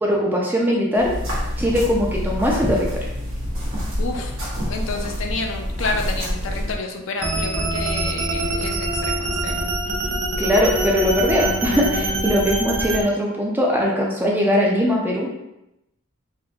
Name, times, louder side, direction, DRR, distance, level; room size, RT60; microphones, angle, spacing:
voice 1, 0.0-1.1 1.6-3.0 10.4-15.3, equal, 10° right, -2 dB, 0.4 m, -20 dB
sound 1, 0.9-6.8, equal, 80° right, 1.0 m, -27 dB
voice 2, 4.0-4.4 4.7-10.2, left 3 dB, 70° left, 3 dB, 0.4 m, -30 dB
sound 2, 7.2-13.0, right 2 dB, 60° right, 0.5 m, -24 dB
3.7 x 2.5 x 2.3 m, 0.89 s
head